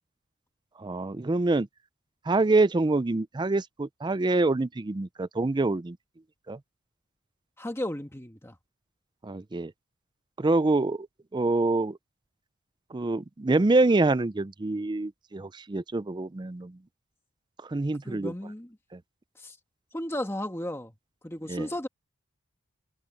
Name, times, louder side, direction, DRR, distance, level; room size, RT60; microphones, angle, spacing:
voice 1, 0.8-1.7 2.3-6.0 6.5-6.6 9.2-9.7 10.4-11.1 11.3-12.0 12.9-16.8 17.6-18.3 18.9-19.0 21.5-21.7, right 2 dB, 20° right, 0.4 m, -26 dB
voice 2, 7.6-8.5 18.0-18.8 19.3-19.6 19.9-20.9 21.2-21.9, left 1 dB, 10° left, 1.5 m, -34 dB
head